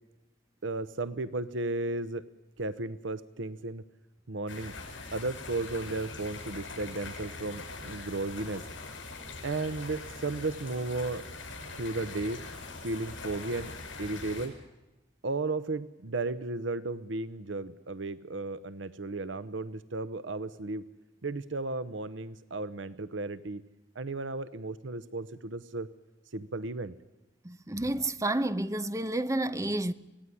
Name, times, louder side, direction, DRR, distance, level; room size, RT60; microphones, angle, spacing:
voice 1, 0.6-2.2 2.6-3.8 4.3-4.7 5.1-8.6 9.4-11.2 11.7-12.4 12.8-13.7 14.0-14.5 15.2-20.8 21.2-23.6 23.9-25.9 26.3-26.9, right 2 dB, 75° right, 0.9 m, -34 dB
sound 1, 4.5-14.5, left 3 dB, 70° left, 7.0 m, -42 dB
voice 2, 27.4-29.9, right 1 dB, 15° right, 0.8 m, -30 dB
25.5 x 17.5 x 9.9 m
head